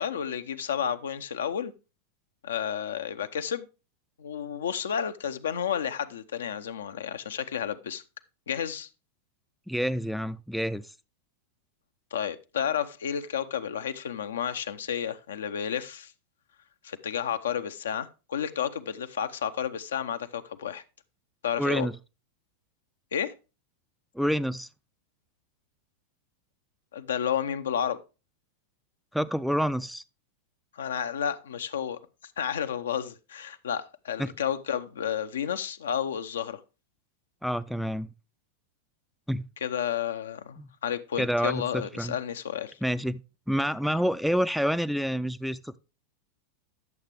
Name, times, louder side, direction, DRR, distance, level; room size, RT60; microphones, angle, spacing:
voice 1, 0.0-1.7 2.4-3.7 4.2-8.0 8.5-8.9 12.1-16.1 16.8-20.8 21.4-21.9 23.1-23.3 26.9-28.0 30.7-32.0 32.4-36.6 39.6-42.8, left 8 dB, 65° left, 0.6 m, -31 dB
voice 2, 9.7-10.9 21.6-21.9 24.2-24.7 29.1-30.0 34.2-34.3 37.4-38.1 39.3-39.5 40.6-40.7 41.2-42.1 42.8-43.2 43.5-45.8, equal, ahead, 0.4 m, -28 dB
10.5 x 7.2 x 3.4 m
figure-of-eight pair, 90°, 0 cm